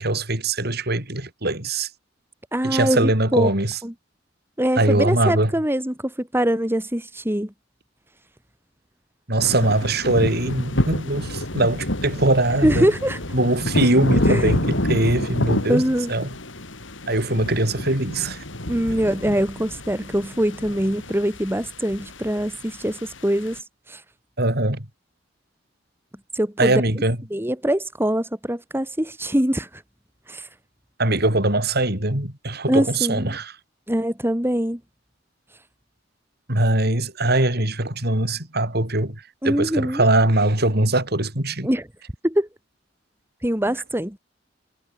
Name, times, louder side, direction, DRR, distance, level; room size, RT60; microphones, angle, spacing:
voice 1, 0.0-1.9 2.6-3.8 4.8-5.5 9.3-12.9 13.3-15.8 16.1-16.3 17.1-18.4 24.4-24.8 26.6-27.2 31.0-33.5 36.5-39.1 39.4-41.7, right 2 dB, 60° right, 6.7 m, -21 dB
voice 2, 2.5-3.5 3.8-3.9 4.6-7.5 12.6-13.2 14.3-14.5 15.7-16.1 18.7-23.6 23.9-24.0 26.3-26.8 27.3-29.8 30.3-30.5 32.7-33.4 33.9-34.8 39.4-40.1 41.6-41.9 42.2-42.5 43.4-44.2, equal, 10° right, 3.6 m, -23 dB
sound 1, 9.4-23.6, left 1 dB, 90° left, 4.8 m, -28 dB
head